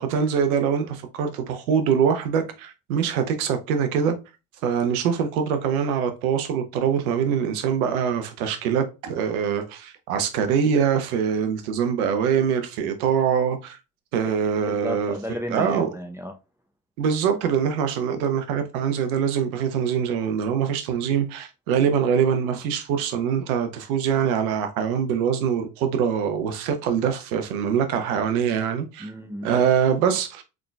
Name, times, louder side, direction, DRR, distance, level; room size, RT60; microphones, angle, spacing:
voice 1, 0.0-4.1 4.6-13.8 14.1-15.1 15.5-15.9 17.0-29.1 29.4-30.4, right 7 dB, 85° right, 0.8 m, -23 dB
voice 2, 14.7-16.3 29.0-29.6, equal, 5° right, 0.5 m, -33 dB
3.8 x 3.6 x 2.2 m
hypercardioid pair, 60°, 42 cm